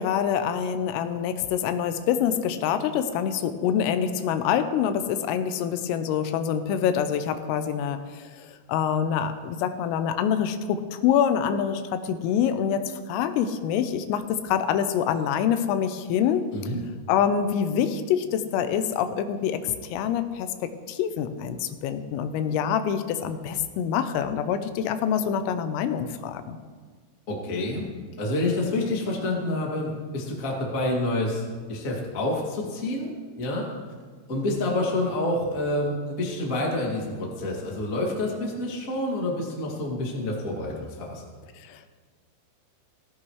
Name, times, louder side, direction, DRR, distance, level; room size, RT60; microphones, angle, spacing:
voice 1, 0.0-8.0 8.4-12.8 13.1-16.4 17.1-26.6 41.6-41.9, left 8 dB, 85° left, 9 dB, 3.3 m, -26 dB
voice 2, 27.3-27.8 28.2-31.4 31.7-33.7 34.3-41.2, left 1 dB, 65° left, -2 dB, 0.8 m, -28 dB
16.5 x 16.0 x 3.2 m, 1.5 s
omnidirectional pair, 6.0 m